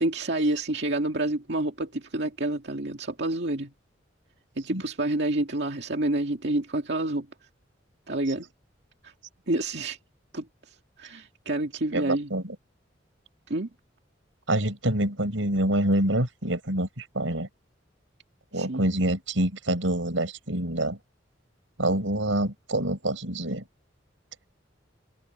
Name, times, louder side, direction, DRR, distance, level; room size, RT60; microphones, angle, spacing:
voice 1, 0.0-3.7 4.6-7.3 8.1-8.5 9.5-10.0 10.3-10.4 11.0-12.3 13.5-13.7 18.5-18.8, right 1 dB, 60° right, 2.3 m, -28 dB
voice 2, 11.9-12.6 14.5-17.5 18.5-21.0 21.8-23.6, right 1 dB, 90° right, 5.4 m, -26 dB
open air
head